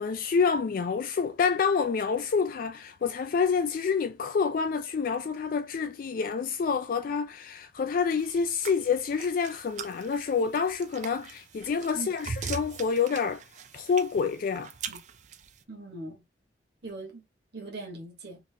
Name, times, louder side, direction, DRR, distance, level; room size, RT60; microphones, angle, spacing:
voice 1, 0.0-13.4 13.7-14.7, left 5 dB, 50° left, 0.3 m, -28 dB
sound 1, 8.2-15.6, right 6 dB, 45° right, 0.4 m, -41 dB
voice 2, 15.7-16.2 16.8-17.2 17.5-18.4, right 2 dB, 65° right, 1.4 m, -40 dB
3.4 x 3.0 x 2.7 m
head